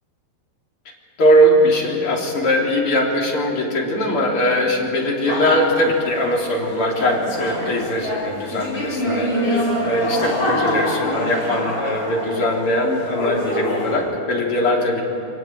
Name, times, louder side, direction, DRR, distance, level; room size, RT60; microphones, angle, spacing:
voice 1, 1.2-15.0, equal, 30° left, -2 dB, 3.7 m, -20 dB
sound 1, 5.2-5.8 6.7-12.6 12.9-14.0, equal, 15° left, 5.2 m, -25 dB
23.5 x 20.5 x 8.8 m, 2.5 s
omnidirectional pair, 5.2 m